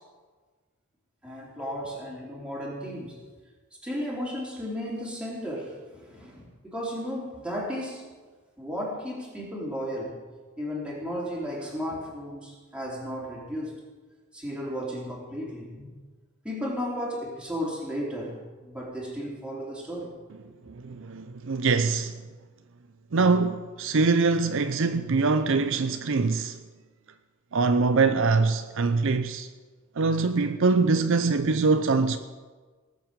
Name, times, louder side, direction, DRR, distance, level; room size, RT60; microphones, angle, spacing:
voice 1, 1.2-3.2 3.8-8.0 8.6-10.2 10.6-13.8 14.3-15.9 16.4-20.2 20.6-20.7, equal, 5° right, 3.7 m, -34 dB
voice 2, 20.9-22.1 23.1-26.5 27.5-29.5 30.0-32.2, right 4 dB, 60° right, 0.6 m, -23 dB
18.5 x 7.5 x 7.5 m
head